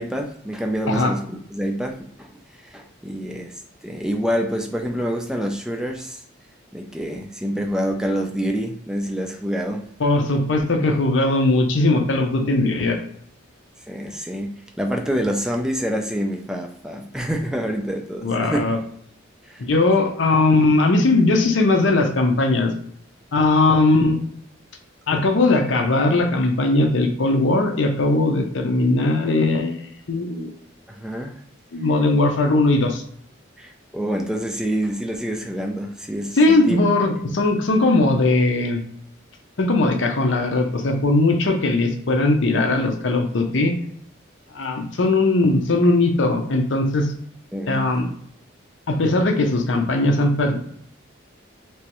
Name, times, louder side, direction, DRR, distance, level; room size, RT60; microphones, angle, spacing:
voice 1, 0.0-2.3 2.6-3.6 3.8-6.2 6.7-9.9 13.9-18.6 19.5-19.6 30.9-31.4 33.6-36.8 47.5-47.9, equal, 5° right, 0.3 m, -27 dB
voice 2, 10.0-13.0 18.2-18.8 19.6-22.7 23.3-24.2 25.1-30.5 31.7-33.0 36.4-38.8 39.6-43.7 44.5-47.1 47.7-48.1 48.9-50.6, left 2 dB, 65° left, 0.6 m, -19 dB
3.4 x 3.0 x 2.9 m
head